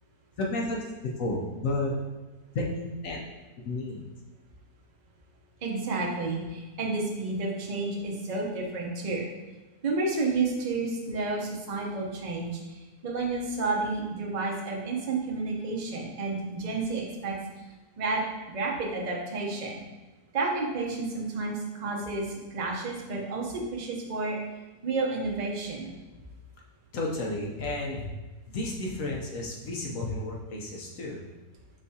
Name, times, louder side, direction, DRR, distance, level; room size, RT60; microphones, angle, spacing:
voice 1, 0.4-0.8 1.2-1.9 2.5-3.2 3.6-4.0 26.9-28.1 28.5-31.2, left 2 dB, 65° left, -1 dB, 1.0 m, -32 dB
voice 2, 5.6-9.3 9.8-12.6 13.0-17.3 18.0-18.2 18.5-19.8 20.3-24.4 24.8-25.9, right 3 dB, 40° right, -2 dB, 0.6 m, -30 dB
5.4 x 3.5 x 2.7 m, 1.2 s
omnidirectional pair, 1.7 m